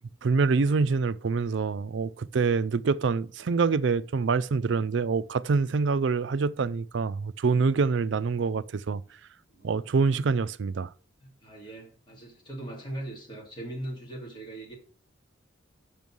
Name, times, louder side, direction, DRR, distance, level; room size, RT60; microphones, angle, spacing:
voice 1, 0.2-9.0 9.6-10.9, right 4 dB, 65° right, 0.4 m, -26 dB
voice 2, 11.2-14.7, right 1 dB, 25° left, 2.5 m, -40 dB
6.2 x 5.4 x 6.2 m
head